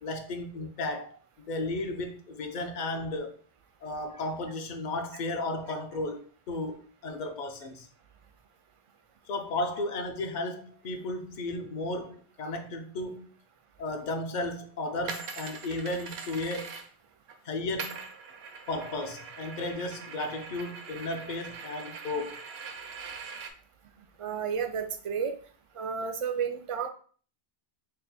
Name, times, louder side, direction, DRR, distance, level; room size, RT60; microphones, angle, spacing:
voice 1, 0.0-3.3 3.8-7.9 9.3-13.3 13.8-16.8 17.4-18.0 18.7-22.4, left 2 dB, 55° left, 0.6 m, -34 dB
sound 1, 15.1-17.4 17.8-23.5, right 5 dB, 80° right, 0.8 m, -42 dB
voice 2, 24.2-25.4 25.7-26.9, right 6 dB, 60° right, 0.3 m, -31 dB
3.6 x 2.1 x 4.2 m
omnidirectional pair, 1.0 m